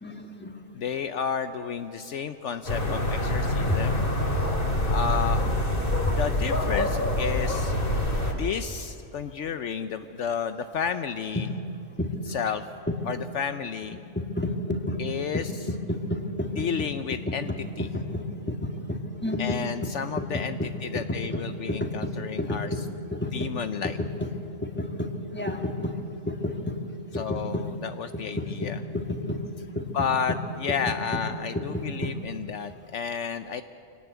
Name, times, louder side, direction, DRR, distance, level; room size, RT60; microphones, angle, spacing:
voice 1, 0.0-0.6 3.7-3.8 4.4-4.5 6.0-6.2 7.7-7.8 11.7-12.3 13.9-15.0 15.3-15.4 15.7-16.7 17.1-17.2 17.8-19.9 21.3-21.4 21.7-22.1 22.4-22.8 23.1-23.5 24.6-26.0 26.2-26.7 27.1-27.6 28.1-29.4 29.7-30.1 31.1-31.2 31.7-32.1, left 1 dB, 10° left, 3 dB, 1.9 m, -31 dB
voice 2, 0.7-4.0 4.9-5.4 6.1-7.7 8.3-11.5 12.2-12.7 13.0-14.0 15.0-15.8 16.5-17.9 19.4-22.9 23.2-24.0 27.1-28.8 29.8-33.6, left 7 dB, 70° left, 10 dB, 1.0 m, -32 dB
sound 1, 2.7-8.3, left 1 dB, 45° left, 2.8 m, -26 dB
25.0 x 18.5 x 8.2 m, 2.8 s
omnidirectional pair, 1.3 m